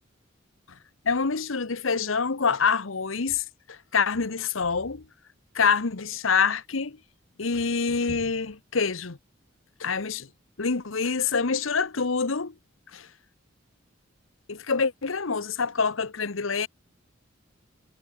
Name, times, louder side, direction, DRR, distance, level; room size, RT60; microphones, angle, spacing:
voice 1, 1.0-5.0 5.5-7.0 7.4-9.2 9.8-10.3 10.6-12.5 12.9-13.1 14.5-16.7, left 5 dB, 75° left, 1.1 m, -26 dB
head